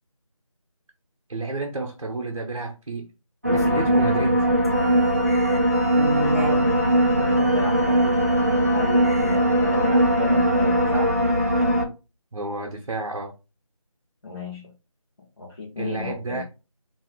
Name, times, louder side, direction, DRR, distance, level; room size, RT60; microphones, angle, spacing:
voice 1, 1.3-3.1 3.5-4.4 12.3-13.3 15.8-16.4, right 2 dB, 65° right, 0.7 m, -30 dB
sound 1, 3.4-11.8, right 1 dB, 30° right, 0.4 m, -20 dB
voice 2, 6.3-6.9 7.2-8.4 8.6-11.1 14.2-14.7 15.4-16.4, left 2 dB, 45° left, 0.9 m, -34 dB
2.6 x 2.4 x 3.5 m
figure-of-eight pair, 175°, 18 cm